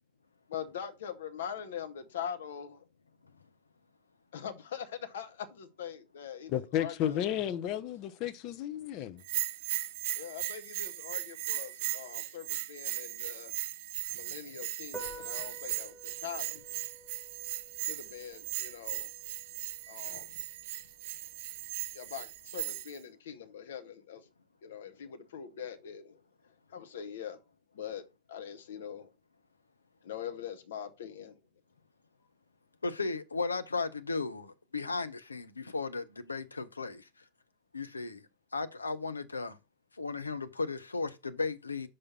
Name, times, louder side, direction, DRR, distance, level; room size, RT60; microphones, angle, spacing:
voice 1, 0.5-2.8 4.3-7.2 10.1-13.5 14.1-16.8 17.8-19.1 19.9-20.4 21.9-24.3 24.6-26.2 26.7-27.4 27.7-29.1 30.0-31.4, left 8 dB, 60° left, 1.0 m, -43 dB
voice 2, 6.5-9.2, left 11 dB, 40° left, 0.6 m, -33 dB
Bell, 9.2-23.0, right 14 dB, 50° right, 0.4 m, -38 dB
Piano, 14.8-22.8, equal, 10° left, 1.4 m, -52 dB
voice 3, 32.8-37.1 37.7-39.6 40.0-41.9, left 4 dB, 80° left, 0.6 m, -35 dB
5.9 x 4.9 x 4.2 m
figure-of-eight pair, 90°, 0 cm